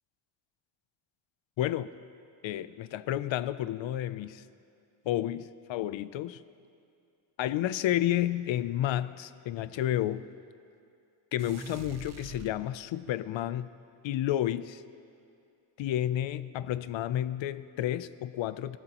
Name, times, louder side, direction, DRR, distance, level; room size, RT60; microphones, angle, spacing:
voice 1, 1.6-1.9 2.4-4.4 5.0-6.4 7.4-10.2 11.3-13.7 14.0-14.8 15.8-18.8, left 12 dB, 65° left, 15 dB, 0.6 m, -31 dB
sound 1, 11.4-13.2, right 7 dB, 35° right, 0.5 m, -46 dB
29.0 x 13.5 x 3.0 m, 2.5 s
wide cardioid pair, 165°, 49 cm